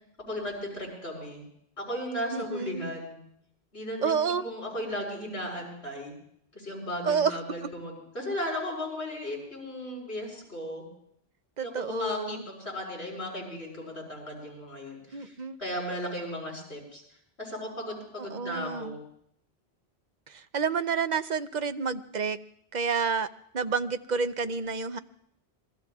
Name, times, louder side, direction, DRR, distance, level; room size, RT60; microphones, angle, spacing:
voice 1, 0.2-1.4 1.8-3.2 3.7-6.1 6.5-10.9 11.6-15.3 15.6-17.0 17.4-19.0, left 1 dB, 85° left, -1 dB, 7.2 m, -36 dB
voice 2, 2.3-2.9 4.0-4.4 7.0-7.4 11.6-12.4 15.1-15.6 18.2-18.9 20.3-22.4 22.7-23.3 23.5-25.0, right 5 dB, 50° right, 10 dB, 0.8 m, -29 dB
27.0 x 21.5 x 2.4 m, 0.68 s
omnidirectional pair, 1.1 m